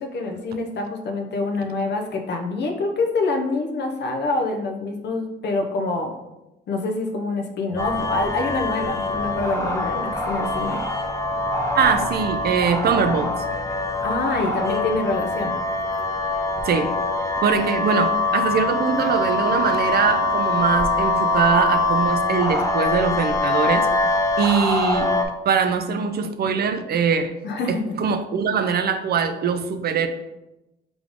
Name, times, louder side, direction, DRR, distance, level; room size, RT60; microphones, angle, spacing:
voice 1, 0.0-6.1 6.7-10.8 14.0-15.5 27.4-27.8, left 3 dB, 60° left, 3 dB, 0.7 m, -26 dB
Piano, 7.7-22.1, equal, 30° right, 1.1 m, -40 dB
sound 1, 7.8-25.3, left 2 dB, 15° left, 0.7 m, -24 dB
voice 2, 11.7-13.4 16.6-16.9 17.4-23.9 24.4-25.1 25.4-27.3 27.7-30.1, right 6 dB, 55° right, 9 dB, 0.4 m, -22 dB
3.7 x 3.5 x 3.5 m, 0.97 s
cardioid pair, 90°, 20 cm